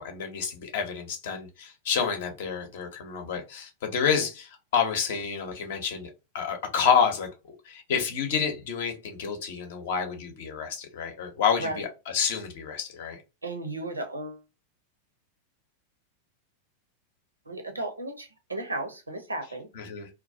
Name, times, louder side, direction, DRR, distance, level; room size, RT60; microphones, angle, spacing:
voice 1, 0.0-4.5 4.7-6.1 6.3-7.3 7.7-11.9 12.1-13.2 19.8-20.1, left 7 dB, 55° left, 0.7 m, -28 dB
voice 2, 13.4-14.4 17.5-19.7, right 2 dB, 80° right, 0.5 m, -35 dB
2.3 x 2.1 x 2.5 m
figure-of-eight pair, 90°, 0 cm